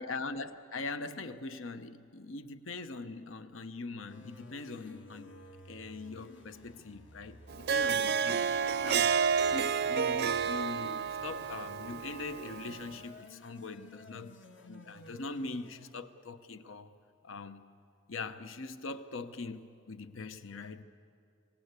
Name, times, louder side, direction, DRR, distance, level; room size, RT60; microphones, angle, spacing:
voice 1, 0.0-5.3 5.7-8.4 8.8-9.1 9.5-14.4 14.6-16.9 17.2-17.7 18.1-20.8, left 3 dB, 85° left, 11 dB, 0.9 m, -42 dB
sound 1, 4.1-15.9, left 1 dB, 65° left, 1.6 m, -54 dB
Harp, 7.5-12.9, right 6 dB, 55° right, 0.5 m, -30 dB
26.5 x 18.0 x 8.2 m, 2.6 s
head